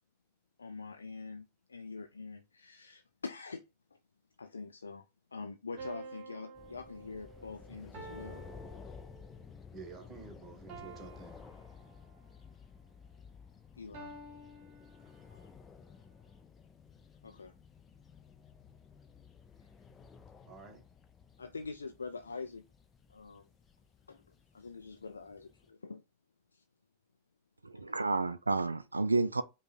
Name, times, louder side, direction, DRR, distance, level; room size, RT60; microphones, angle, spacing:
voice 1, 0.6-3.6 3.9-4.0 4.4-8.4 13.8-14.1 15.3-15.5 17.2-17.5 21.4-22.6 23.1-23.5 24.1-26.0 26.5-26.6 27.7-27.8, left 4 dB, 75° left, 0.4 m, -45 dB
sound 1, 5.8-9.5 10.7-12.3 13.9-15.5, right 3 dB, 45° right, 1.0 m, -50 dB
sound 2, 6.6-25.7, left 6 dB, 20° left, 0.6 m, -54 dB
voice 2, 9.7-11.4 15.0-15.2 20.4-20.8, right 4 dB, 20° right, 1.2 m, -50 dB
voice 3, 27.6-29.4, right 3 dB, 80° right, 0.3 m, -30 dB
5.3 x 2.4 x 4.1 m
figure-of-eight pair, 90°, 0 cm